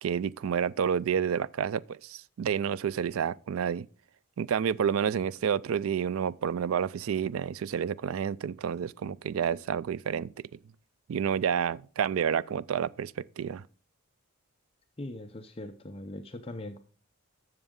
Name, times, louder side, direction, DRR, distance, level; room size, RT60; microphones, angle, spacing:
voice 1, 0.0-3.9 4.4-10.3 11.1-13.6, right 7 dB, 75° right, 0.3 m, -29 dB
voice 2, 15.0-16.8, left 1 dB, 25° left, 0.6 m, -40 dB
12.5 x 7.0 x 3.7 m
head